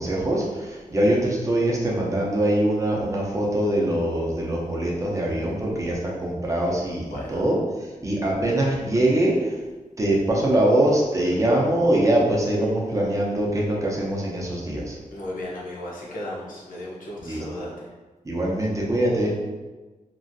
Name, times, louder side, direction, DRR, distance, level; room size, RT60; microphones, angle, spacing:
voice 1, 0.0-7.6 8.0-9.5 10.0-14.9 17.2-17.4 18.2-19.3, right 1 dB, 25° right, -3 dB, 0.6 m, -23 dB
voice 2, 7.1-7.4 15.1-17.9, left 1 dB, 85° left, -5 dB, 0.8 m, -35 dB
3.0 x 2.5 x 2.6 m, 1.2 s
wide cardioid pair, 145°, 14 cm